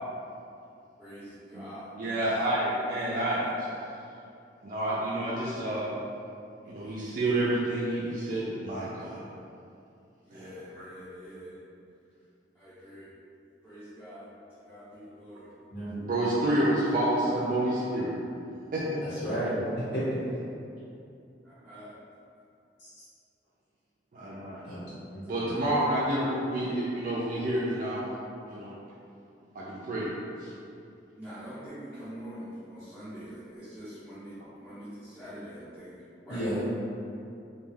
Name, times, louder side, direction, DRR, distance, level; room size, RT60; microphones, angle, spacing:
voice 1, 1.0-2.7 10.2-11.6 12.5-13.1 13.6-15.5 19.2-19.5 20.8-21.0 21.4-22.0 31.2-36.7, equal, 5° left, -16 dB, 0.6 m, -45 dB
voice 2, 1.5-3.4 4.6-5.9 6.7-9.2 10.3-10.5 10.8-10.9 16.1-18.1 18.7-18.8 24.1-24.6 25.3-28.0 28.5-28.7 29.5-30.1 30.4-30.5, right 1 dB, 45° right, -7 dB, 0.3 m, -29 dB
voice 3, 15.7-16.0 19.2-20.2 22.8-22.9 24.6-25.2 36.3-36.6, equal, 70° left, -13 dB, 1.2 m, -32 dB
2.3 x 2.2 x 3.2 m, 2.6 s
head